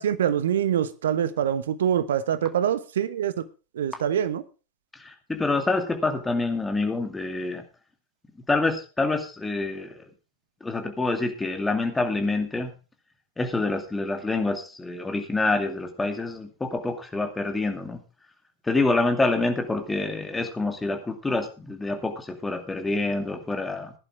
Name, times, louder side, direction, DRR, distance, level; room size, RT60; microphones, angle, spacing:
voice 1, 0.0-3.3 3.7-4.4, right 9 dB, 60° right, 1.2 m, -24 dB
voice 2, 4.9-7.6 8.5-10.1 10.6-12.7 13.4-18.0 18.6-23.9, left 3 dB, 10° left, 2.5 m, -27 dB
16.5 x 11.0 x 3.6 m
figure-of-eight pair, 90°, 0 cm